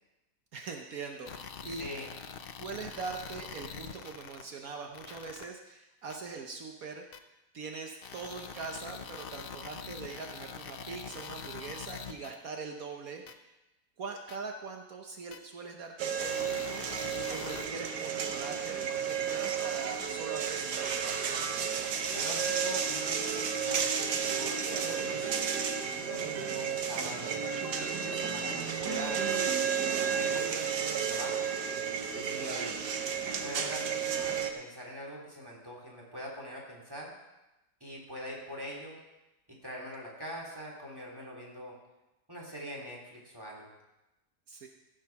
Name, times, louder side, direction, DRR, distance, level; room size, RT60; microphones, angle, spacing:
voice 1, 0.5-1.9 2.6-7.2 7.5-13.5 14.0-16.9 17.3-21.4 24.8-25.2 32.4-32.8 44.5-44.7, right 4 dB, 65° right, 3 dB, 1.3 m, -42 dB
sound 1, 1.3-4.4 4.9-5.4 6.1-6.2 7.1-7.2 8.0-12.3 13.3-13.4 14.3-14.4 15.3-15.4 16.2-17.6, left 6 dB, 55° left, 0.6 m, -44 dB
voice 2, 1.7-2.1 22.0-23.9 24.4-25.2 26.0-27.4 27.7-29.2 30.1-31.5 32.1-32.8 33.4-37.1 37.8-39.0 39.6-41.7 42.3-43.7, equal, 15° right, -3 dB, 2.9 m, -43 dB
sound 2, 16.0-34.5, right 7 dB, 85° right, 1.5 m, -32 dB
14.5 x 6.5 x 5.9 m, 0.99 s
omnidirectional pair, 1.7 m